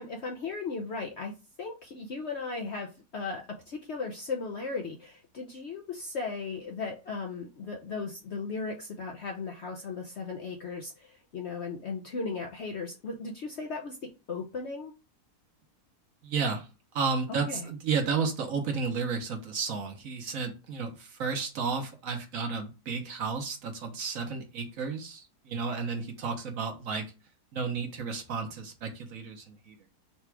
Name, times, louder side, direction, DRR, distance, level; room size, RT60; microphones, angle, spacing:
voice 1, 0.0-1.3 1.6-14.0 14.3-14.9 17.5-17.7, left 4 dB, 65° left, 2 dB, 0.7 m, -36 dB
voice 2, 16.2-16.7 16.9-27.1 27.5-29.9, right 5 dB, 60° right, 4 dB, 1.2 m, -32 dB
4.1 x 2.4 x 4.5 m, 0.30 s
omnidirectional pair, 1.7 m